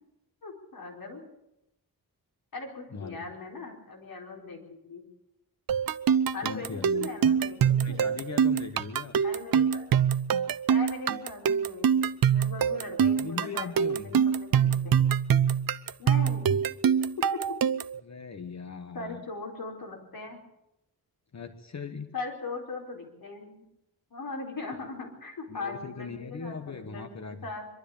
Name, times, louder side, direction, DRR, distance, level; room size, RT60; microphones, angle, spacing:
voice 1, 0.4-1.2 2.5-4.6 4.9-5.0 6.3-8.1 9.2-9.9 10.7-11.9 12.3-14.9 16.0-16.6 17.2-17.4 18.9-20.4 22.1-23.6 24.1-27.7, left 3 dB, 65° left, 1 dB, 4.6 m, -39 dB
voice 2, 2.9-3.4 6.4-7.1 7.8-9.1 13.1-14.2 18.0-19.2 21.3-22.1 25.5-27.4, left 5 dB, 45° left, 8 dB, 1.2 m, -39 dB
sound 1, 5.7-18.0, right 8 dB, 65° right, 0.6 m, -24 dB
23.5 x 13.0 x 8.5 m, 0.85 s
wide cardioid pair, 160°, 38 cm